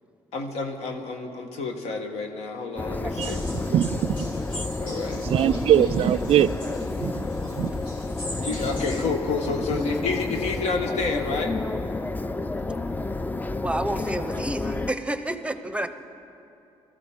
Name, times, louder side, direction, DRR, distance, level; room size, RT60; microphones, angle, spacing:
voice 1, 0.3-3.4 4.8-5.2 8.4-11.5, left 4 dB, 75° left, 4 dB, 1.4 m, -29 dB
sound 1, 2.8-14.9, left 2 dB, 15° left, 0.5 m, -30 dB
sound 2, 3.2-9.0, equal, 55° left, 4.1 m, -41 dB
voice 2, 3.7-4.3 4.5-4.6 5.2-6.6 7.0-7.3 7.6-7.7, right 10 dB, 60° right, 16 dB, 0.4 m, -22 dB
voice 3, 13.6-15.9, right 1 dB, 10° right, 9 dB, 0.8 m, -29 dB
20.5 x 13.5 x 3.7 m, 2.7 s
supercardioid pair, 70°, 11 cm